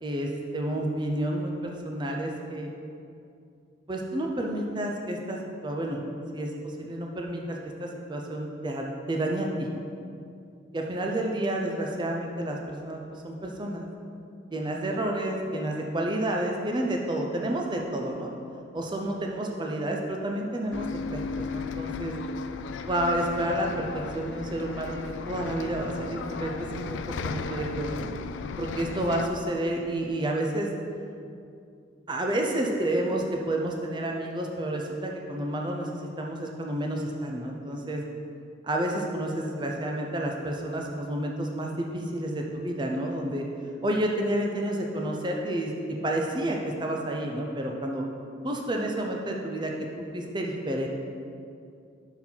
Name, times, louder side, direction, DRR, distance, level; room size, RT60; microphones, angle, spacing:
voice 1, 0.0-2.7 3.9-6.0 6.3-9.7 10.7-13.9 14.5-18.3 18.7-22.2 22.9-27.0 27.2-28.1 28.6-30.7 32.1-38.0 38.6-43.4 43.8-48.0 48.4-49.7 50.1-50.9, right 1 dB, 25° right, 1 dB, 0.5 m, -30 dB
Bus, 20.7-29.3, left 4 dB, 75° left, 0.3 m, -35 dB
6.0 x 4.6 x 5.5 m, 2.4 s
head